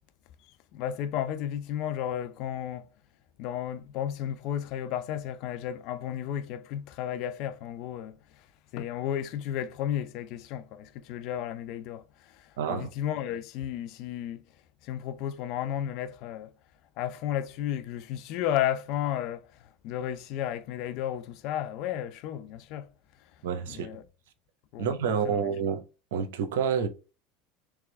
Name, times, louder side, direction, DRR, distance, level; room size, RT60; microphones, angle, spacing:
voice 1, 0.4-2.9 3.4-8.5 8.7-14.4 14.8-16.5 17.0-22.9 23.2-23.3 23.7-24.0 24.7-24.9 25.2-25.5, left 10 dB, 60° left, 0.5 m, -33 dB
voice 2, 12.6-12.9 23.4-23.9 24.8-25.8 26.1-26.9, right 7 dB, 80° right, 0.8 m, -28 dB
3.6 x 3.4 x 3.1 m
supercardioid pair, 100°, 0 cm